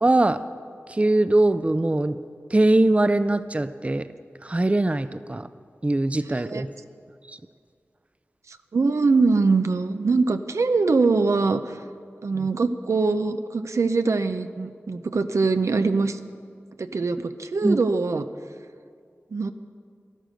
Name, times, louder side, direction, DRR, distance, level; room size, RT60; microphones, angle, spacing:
voice 1, 0.0-0.4 0.9-2.2 2.5-4.1 4.4-5.5 5.8-6.7 7.3-7.4 12.3-12.5 17.6-17.8, right 2 dB, 25° right, 13 dB, 0.5 m, -21 dB
voice 2, 8.5-11.8 12.2-16.2 16.8-18.3 19.3-19.5, right 4 dB, 80° right, 9 dB, 0.6 m, -23 dB
13.5 x 12.0 x 6.4 m, 2.1 s
wide cardioid pair, 50°, 5 cm